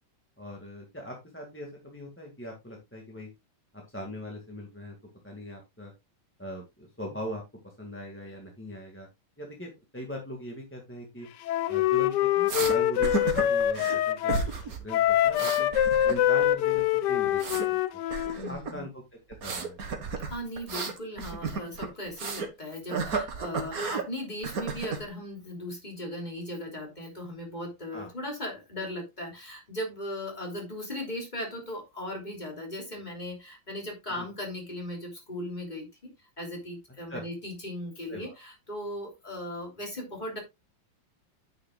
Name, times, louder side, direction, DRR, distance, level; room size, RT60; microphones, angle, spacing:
voice 1, 0.4-3.3 3.7-5.0 5.2-5.9 6.4-7.4 7.8-9.1 9.4-11.3 11.7-13.1 13.4-14.5 14.8-15.7 16.0-18.0 18.4-19.0 19.4-19.8 27.9-28.1 34.2-34.3 37.1-37.2 38.1-38.3, equal, 5° left, 0 dB, 1.8 m, -40 dB
Wind instrument woodwind instrument, 11.5-14.5 14.9-18.4, left 11 dB, 70° left, 1.2 m, -25 dB
sound 1, 12.5-12.8 13.0-14.0 14.3-14.8 15.1-16.5 16.7-17.7 18.1-18.8 19.3-22.5 22.9-24.1 24.4-25.1, right 4 dB, 50° right, 1.9 m, -33 dB
voice 2, 18.3-18.9 20.3-36.1 36.4-40.4, left 1 dB, 20° left, 1 dB, 3.3 m, -38 dB
9.3 x 9.3 x 2.4 m, 0.21 s
omnidirectional pair, 2.1 m